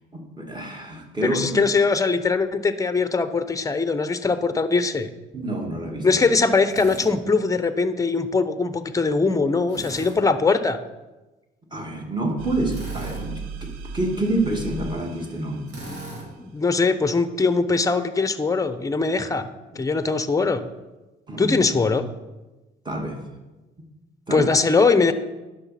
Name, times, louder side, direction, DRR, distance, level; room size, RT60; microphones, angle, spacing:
voice 1, 0.1-1.6 5.3-6.1 11.7-15.6 19.7-19.9 21.3-21.6 22.9-23.2 24.3-24.5, right 2 dB, 20° right, 2 dB, 2.2 m, -28 dB
voice 2, 1.2-5.1 6.0-10.8 16.4-19.5 19.8-20.6 21.4-22.1 24.3-25.1, left 4 dB, 15° left, 11 dB, 0.7 m, -21 dB
Drill, 6.7-7.1 9.7-10.2 12.7-13.2 15.7-16.3, right 1 dB, 65° right, 3.3 m, -37 dB
sound 1, 12.4-15.9, right 3 dB, 85° right, 0.9 m, -36 dB
10.5 x 6.6 x 5.8 m, 1.1 s
cardioid pair, 90°, 20 cm